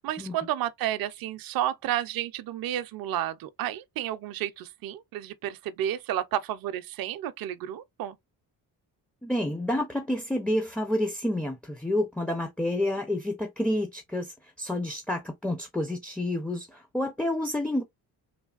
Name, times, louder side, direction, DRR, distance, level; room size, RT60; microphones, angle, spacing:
voice 1, 0.0-8.2, right 12 dB, 55° right, 0.5 m, -31 dB
voice 2, 9.2-17.8, left 1 dB, ahead, 0.5 m, -29 dB
3.2 x 2.1 x 2.4 m
supercardioid pair, 65°, 43 cm